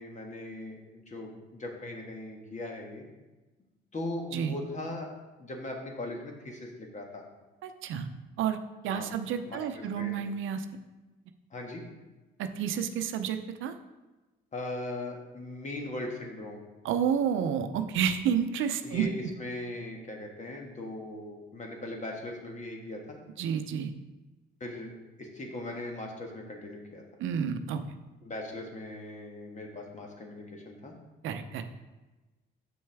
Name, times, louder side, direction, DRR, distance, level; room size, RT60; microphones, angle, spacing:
voice 1, 0.0-3.0 3.9-5.1 5.4-7.2 8.9-9.1 9.4-10.1 11.5-11.8 14.5-16.7 18.8-23.2 24.6-27.0 28.2-30.9, left 1 dB, 35° left, 1 dB, 1.5 m, -39 dB
voice 2, 7.6-8.1 8.4-8.6 8.8-10.7 12.4-13.8 16.8-19.1 23.4-23.9 27.2-27.8 31.2-31.6, right 8 dB, 80° right, 8 dB, 0.6 m, -30 dB
7.0 x 6.3 x 3.5 m, 1.1 s
cardioid pair, 90°, 20 cm